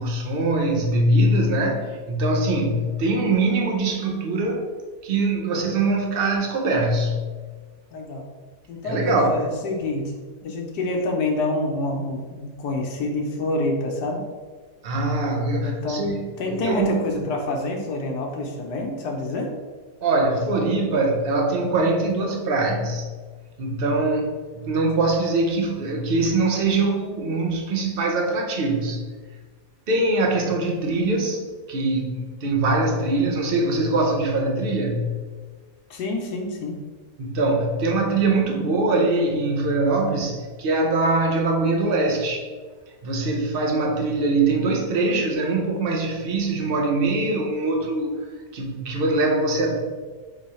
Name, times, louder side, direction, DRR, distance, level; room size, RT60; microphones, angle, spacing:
voice 1, 0.0-4.7 5.0-7.2 8.8-9.5 14.8-17.0 20.0-23.1 23.6-29.0 29.9-35.1 37.2-42.5 43.0-49.8, right 2 dB, 65° right, 1 dB, 0.5 m, -23 dB
voice 2, 7.9-8.3 8.7-10.1 10.4-14.2 15.6-16.1 16.4-19.5 35.9-36.8, left 2 dB, 85° left, 1 dB, 1.3 m, -27 dB
4.0 x 3.1 x 4.1 m, 1.4 s
omnidirectional pair, 1.7 m